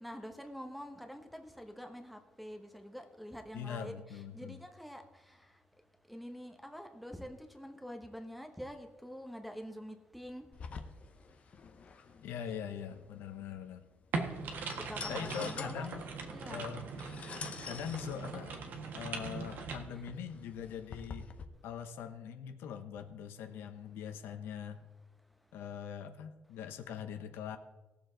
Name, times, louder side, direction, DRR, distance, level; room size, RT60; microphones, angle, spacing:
voice 1, 0.0-5.0 6.1-10.5 14.9-15.9 16.3-16.7, equal, ahead, 0.9 m, -46 dB
voice 2, 3.5-4.6 12.2-13.8 14.3-14.4 15.1-16.0 16.5-16.9 17.6-18.6 18.9-21.3 21.6-24.8 25.5-27.6, left 8 dB, 85° left, 0.9 m, -42 dB
sound 1, 10.5-21.5, left 5 dB, 35° left, 0.8 m, -48 dB
sound 2, 14.1-19.8, right 4 dB, 55° right, 1.5 m, -40 dB
18.5 x 6.9 x 3.9 m
cardioid pair, 160°, 4 cm